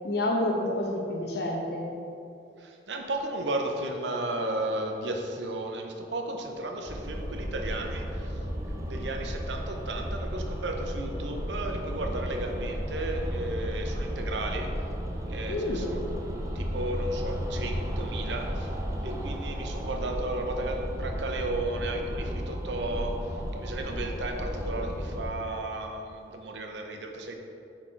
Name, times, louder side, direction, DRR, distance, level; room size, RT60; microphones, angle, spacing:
voice 1, 0.0-1.9 15.5-15.9, left 1 dB, 65° left, 0 dB, 1.1 m, -29 dB
voice 2, 2.6-8.4 8.9-14.7 15.3-16.0 16.5-18.7 19.0-23.3 23.6-27.3, right 2 dB, 80° right, 3 dB, 0.8 m, -34 dB
sound 1, 6.9-25.3, equal, 20° right, 0.8 m, -34 dB
7.2 x 4.9 x 4.5 m, 2.7 s
head